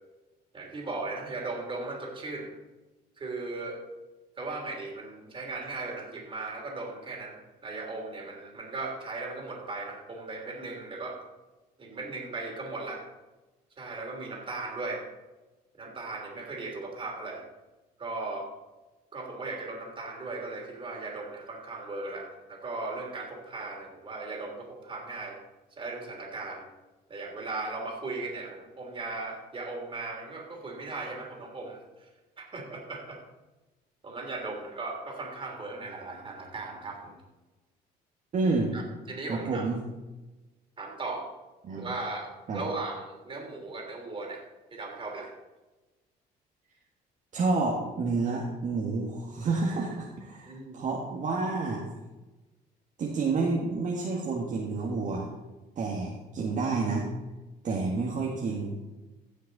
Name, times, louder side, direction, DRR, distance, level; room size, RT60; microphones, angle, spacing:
voice 1, 0.5-2.5 3.2-3.8 4.4-11.2 11.8-13.0 13.8-15.0 15.8-17.4 18.0-18.5 19.1-25.4 25.7-26.6 27.1-32.1 32.4-33.2 34.0-37.2 38.7-39.7 40.8-41.2 41.8-44.4 44.7-45.3 50.4-50.8, right 3 dB, 30° right, 1 dB, 3.2 m, -37 dB
voice 2, 38.3-38.7 39.3-39.8 41.6-41.9 42.5-42.6 47.3-51.8 53.0-55.3 55.8-57.1 57.6-58.8, right 3 dB, 50° right, -2 dB, 1.8 m, -29 dB
16.0 x 6.5 x 4.1 m, 1.1 s
cardioid pair, 110°, 17 cm